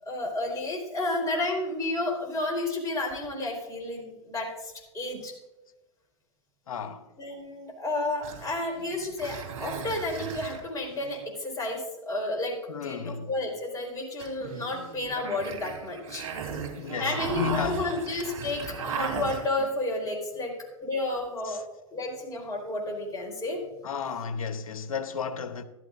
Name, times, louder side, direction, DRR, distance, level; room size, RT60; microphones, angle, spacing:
voice 1, 0.0-5.3 7.2-16.2 17.0-20.5 20.8-21.6 21.9-23.6, left 2 dB, 20° left, 4.2 m, -31 dB
voice 2, 6.7-7.0 12.7-13.3 16.8-17.9 21.5-21.6 23.8-25.6, left 7 dB, 80° left, 1.0 m, -33 dB
sound 1, 8.2-11.2 14.2-19.7, right 6 dB, 65° right, 3.3 m, -37 dB
14.0 x 12.0 x 2.6 m
hypercardioid pair, 105°, 18 cm